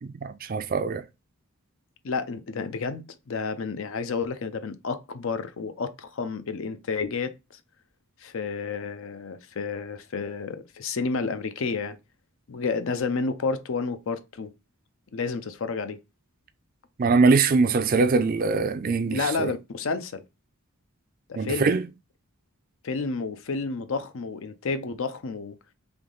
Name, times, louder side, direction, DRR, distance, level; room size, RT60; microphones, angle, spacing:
voice 1, 0.0-1.0 17.0-19.5 21.4-21.9, right 4 dB, 40° right, 0.4 m, -22 dB
voice 2, 2.0-7.3 8.2-12.0 12.5-14.5 15.1-16.0 19.1-20.2 21.3-21.7 22.8-25.5, left 4 dB, 60° left, 0.5 m, -30 dB
3.5 x 3.0 x 3.7 m
head